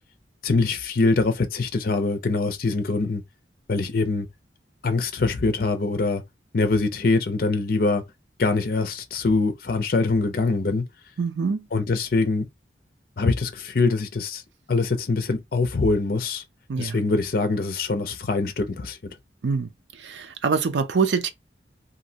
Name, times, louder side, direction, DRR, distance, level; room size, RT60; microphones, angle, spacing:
voice 1, 0.4-3.2 3.7-4.3 4.8-6.2 6.5-8.0 8.4-10.8 11.7-12.5 13.2-14.4 14.7-16.4 16.8-19.0, left 3 dB, 55° left, 0.5 m, -23 dB
voice 2, 11.2-11.6 16.7-17.0 19.4-19.7 20.0-21.3, right 5 dB, 80° right, 0.5 m, -24 dB
3.0 x 2.6 x 2.8 m
head